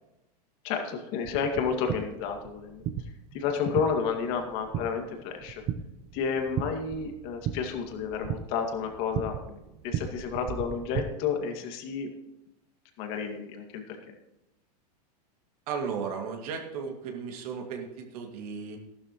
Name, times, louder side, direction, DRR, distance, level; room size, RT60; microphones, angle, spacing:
voice 1, 0.6-2.8 3.3-5.6 6.1-12.1 13.0-14.1, left 6 dB, 45° left, 4 dB, 2.2 m, -31 dB
sound 1, 1.2-11.0, right 9 dB, 35° right, 0.7 m, -37 dB
voice 2, 15.7-18.8, right 6 dB, 65° right, 2 dB, 2.3 m, -35 dB
14.0 x 12.0 x 3.1 m, 0.93 s
supercardioid pair, 145°, 21 cm